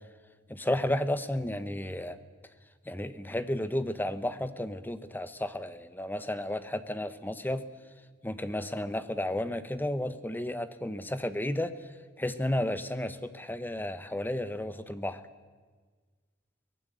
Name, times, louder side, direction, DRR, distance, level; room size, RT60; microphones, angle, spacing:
voice 1, 0.5-2.2 2.9-7.6 8.2-11.7 12.2-15.2, left 1 dB, 10° left, 12 dB, 1.0 m, -32 dB
23.5 x 19.0 x 8.1 m, 1.4 s
head